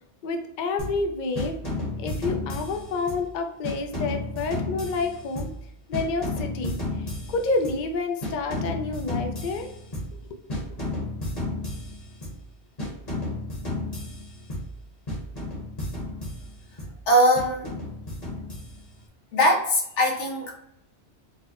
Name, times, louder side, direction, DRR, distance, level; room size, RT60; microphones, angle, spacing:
voice 1, 0.2-1.5 2.0-5.5 5.9-9.7 10.3-10.4, left 3 dB, 60° left, 4 dB, 0.5 m, -29 dB
sound 1, 0.8-1.1 1.4-3.3 3.6-5.7 5.9-7.9 8.2-10.2 10.5-12.4 12.8-14.8 15.1-17.0 17.4-19.0, left 1 dB, 35° left, 1.1 m, -33 dB
voice 2, 17.1-17.8 19.3-20.5, equal, 80° left, 1 dB, 1.2 m, -21 dB
4.4 x 2.1 x 2.9 m, 0.78 s
omnidirectional pair, 1.2 m